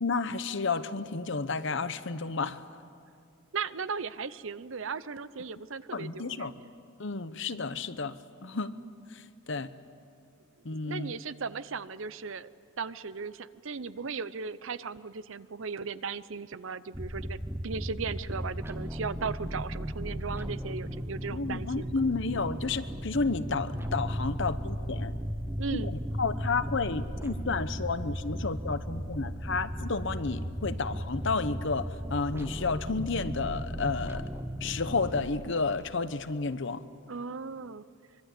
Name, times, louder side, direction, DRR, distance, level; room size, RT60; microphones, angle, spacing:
voice 1, 0.0-2.6 5.9-6.5 7.0-8.7 9.1-9.2 9.5-9.7 10.6-11.1 21.3-25.1 25.7-34.2 34.6-36.8, left 4 dB, 60° left, 12 dB, 0.9 m, -31 dB
voice 2, 3.5-6.5 10.9-12.5 12.8-21.9 25.6-26.0 37.1-37.8, right 5 dB, 70° right, 15 dB, 0.7 m, -37 dB
sound 1, 16.9-35.2, equal, 10° right, 1.1 m, -36 dB
25.0 x 23.0 x 8.4 m, 2.4 s
head